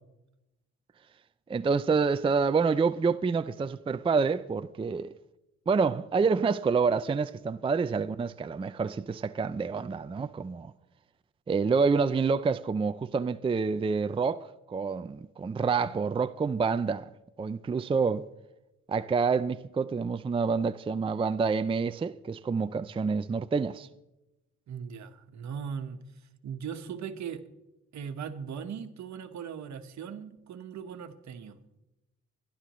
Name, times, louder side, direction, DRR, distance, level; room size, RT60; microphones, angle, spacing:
voice 1, 1.5-5.1 5.7-10.7 11.5-17.1 17.4-18.3 18.9-23.9, right 5 dB, 20° right, 0.4 m, -27 dB
voice 2, 24.7-26.0 26.4-27.4 27.9-31.5, right 7 dB, 65° right, 1.4 m, -39 dB
26.0 x 11.5 x 3.1 m
cardioid pair, 90°, 30 cm